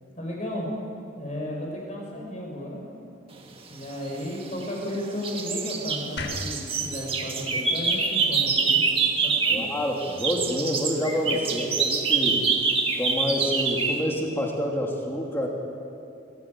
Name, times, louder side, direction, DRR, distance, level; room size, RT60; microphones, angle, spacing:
voice 1, 0.2-0.7 1.2-2.8 3.7-8.8 9.2-9.6 11.3-11.4, left 1 dB, 35° left, -1 dB, 5.1 m, -34 dB
sound 1, 4.1-4.9 5.2-9.7 10.0-14.0, right 5 dB, 30° right, 1.6 m, -25 dB
sound 2, 6.2-9.3, left 2 dB, 55° left, 1.5 m, -40 dB
voice 2, 9.5-12.4 13.0-15.5, equal, 10° left, -1 dB, 3.0 m, -27 dB
24.5 x 16.0 x 9.2 m, 2.6 s
head